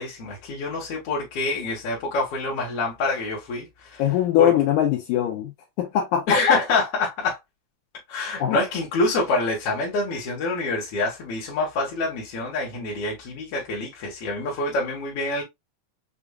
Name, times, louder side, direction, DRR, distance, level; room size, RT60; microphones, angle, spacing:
voice 1, 0.0-4.1 4.4-4.5 6.3-7.4 8.1-15.4, left 3 dB, 60° left, 1.7 m, -26 dB
voice 2, 4.0-5.5 5.8-6.4 8.4-8.6, left 10 dB, 80° left, 2.0 m, -21 dB
6.7 x 2.5 x 2.3 m
omnidirectional pair, 4.1 m